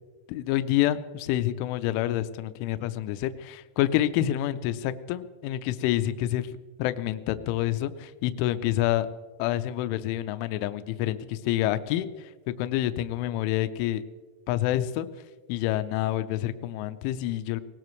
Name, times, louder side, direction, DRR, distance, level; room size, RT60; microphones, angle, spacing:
voice 1, 0.3-9.1 9.4-14.0 14.5-15.1 15.5-17.6, left 13 dB, 85° left, 11 dB, 3.0 m, -28 dB
20.0 x 19.0 x 3.1 m, 1.3 s
omnidirectional pair, 5.6 m